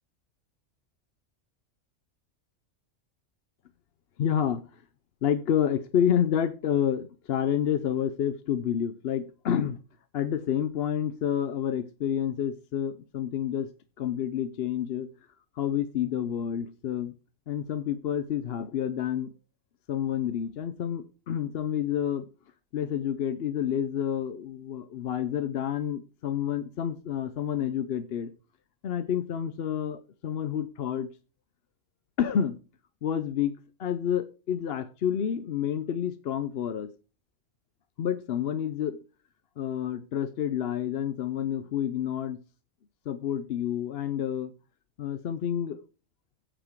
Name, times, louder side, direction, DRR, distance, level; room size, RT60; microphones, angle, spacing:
voice 1, 4.2-4.8 5.2-9.8 10.1-13.7 14.0-15.1 15.6-17.1 17.5-19.3 19.9-22.3 22.7-28.3 28.8-31.1 32.2-32.6 33.0-33.5 33.8-36.9 38.0-39.0 39.6-42.4 43.1-44.5 45.0-45.8, left 9 dB, 60° left, 11 dB, 0.8 m, -29 dB
8.9 x 7.1 x 4.5 m, 0.34 s
omnidirectional pair, 1.3 m